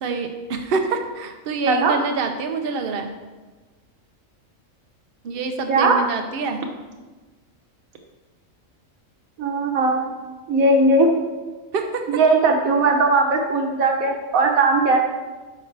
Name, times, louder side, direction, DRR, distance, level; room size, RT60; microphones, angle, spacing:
voice 1, 0.0-3.1 5.2-6.6 11.7-12.0, right 4 dB, 50° right, 5 dB, 0.8 m, -26 dB
voice 2, 9.4-10.1 10.5-11.1 12.1-15.0, right 3 dB, 90° right, 2 dB, 1.4 m, -18 dB
8.6 x 5.6 x 3.3 m, 1.3 s
omnidirectional pair, 1.4 m